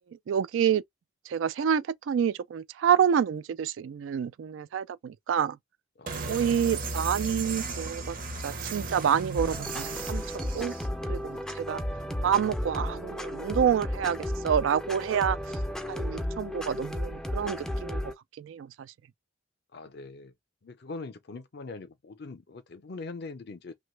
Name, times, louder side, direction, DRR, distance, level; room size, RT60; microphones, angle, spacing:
voice 1, 0.3-0.8 1.3-5.6 6.3-8.2 8.4-10.7 11.1-11.8 12.2-15.4 15.9-18.1 18.4-18.9, right 8 dB, 70° right, 0.3 m, -28 dB
voice 2, 6.0-6.5 19.7-20.3 20.6-23.7, left 3 dB, 55° left, 0.6 m, -42 dB
sound 1, 6.1-10.9, right 3 dB, 45° right, 0.7 m, -36 dB
sound 2, 9.4-18.1, left 1 dB, 5° left, 0.4 m, -33 dB
3.0 x 2.2 x 3.1 m
head